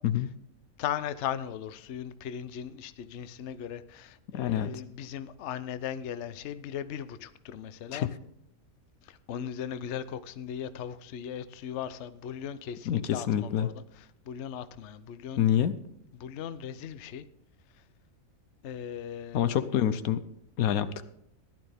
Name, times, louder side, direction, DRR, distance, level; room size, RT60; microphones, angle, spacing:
voice 1, 0.8-8.1 9.1-15.5 16.2-17.2 18.6-19.6, left 9 dB, 60° left, 13 dB, 0.9 m, -38 dB
voice 2, 4.3-4.7 7.9-8.2 12.8-13.7 15.4-15.8 19.3-20.2 20.6-21.1, left 10 dB, 85° left, 13 dB, 1.2 m, -27 dB
15.5 x 11.0 x 3.5 m, 0.77 s
omnidirectional pair, 1.5 m